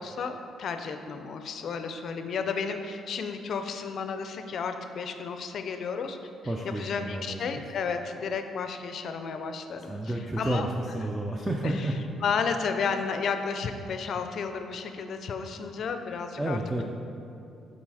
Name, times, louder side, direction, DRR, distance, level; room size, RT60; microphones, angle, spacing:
voice 1, 0.0-6.2 6.6-10.7 11.6-11.9 12.2-16.6, left 5 dB, 55° left, 7 dB, 0.4 m, -32 dB
voice 2, 6.4-7.6 9.9-11.9 16.4-16.8, right 1 dB, 10° right, 0 dB, 0.4 m, -31 dB
7.5 x 3.9 x 4.8 m, 2.7 s
cardioid pair, 140°, 0 cm